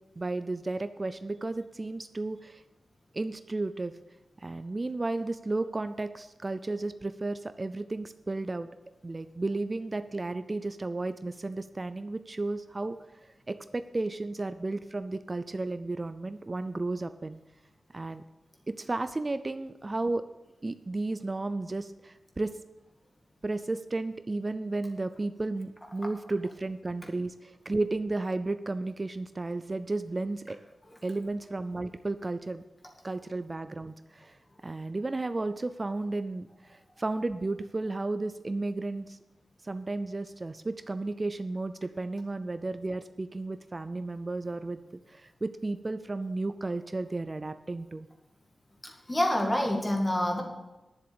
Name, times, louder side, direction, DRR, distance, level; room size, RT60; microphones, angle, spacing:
voice 1, 0.2-2.6 3.1-3.9 4.4-8.7 9.0-13.0 13.2-17.4 17.9-18.2 18.8-20.2 20.6-22.5 23.4-30.6 31.0-32.6 33.0-34.4 34.6-39.2 39.6-44.8 45.1-48.1, right 2 dB, 25° right, 11 dB, 0.4 m, -33 dB
voice 2, 48.8-50.4, left 1 dB, 15° left, 2 dB, 1.8 m, -27 dB
11.0 x 7.0 x 6.9 m, 1.0 s
wide cardioid pair, 160°, 0 cm